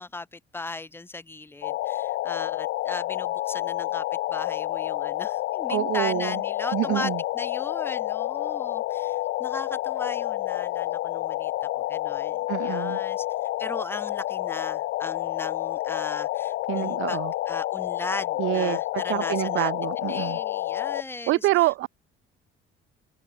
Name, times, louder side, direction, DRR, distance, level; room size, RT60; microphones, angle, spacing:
voice 1, 0.0-4.0 4.3-13.3 13.6-19.7 20.1-21.6, left 3 dB, 10° left, 2.4 m, -37 dB
sound 1, 1.6-21.0, left 16 dB, 60° left, 0.7 m, -29 dB
voice 2, 5.7-6.4 6.7-7.2 12.5-13.0 16.7-17.3 18.4-18.8 19.1-20.4 21.3-21.9, right 18 dB, 75° right, 1.0 m, -26 dB
cardioid pair, 160°, 21 cm